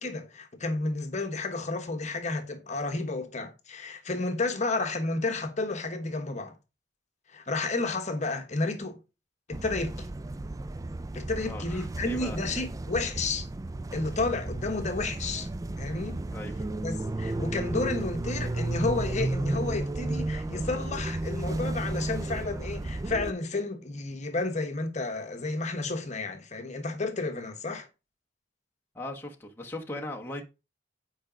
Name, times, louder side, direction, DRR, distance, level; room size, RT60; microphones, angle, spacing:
voice 1, 0.0-6.5 7.3-9.0 9.5-10.1 11.1-13.5 13.9-15.5 15.8-16.2 16.8-27.9, left 3 dB, 40° left, 1.2 m, -31 dB
sound 1, 9.5-23.3, right 2 dB, 20° right, 0.4 m, -33 dB
voice 2, 11.4-12.4 16.3-16.5 28.9-30.4, left 1 dB, 10° left, 1.2 m, -38 dB
8.6 x 5.1 x 5.1 m
head